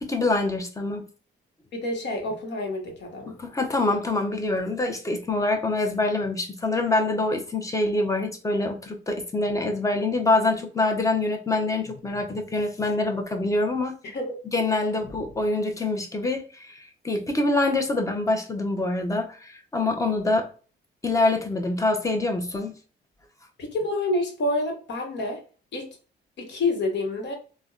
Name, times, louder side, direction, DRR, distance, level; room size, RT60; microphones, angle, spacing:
voice 1, 0.0-1.0 3.3-13.9 14.5-20.5 21.0-22.7, left 2 dB, 15° left, 3 dB, 0.7 m, -25 dB
voice 2, 1.7-3.4 14.0-14.3 23.6-25.4 25.7-25.9 26.4-27.3, left 2 dB, 65° left, 2 dB, 1.0 m, -28 dB
3.4 x 2.1 x 2.3 m, 0.37 s
cardioid pair, 90°, 20 cm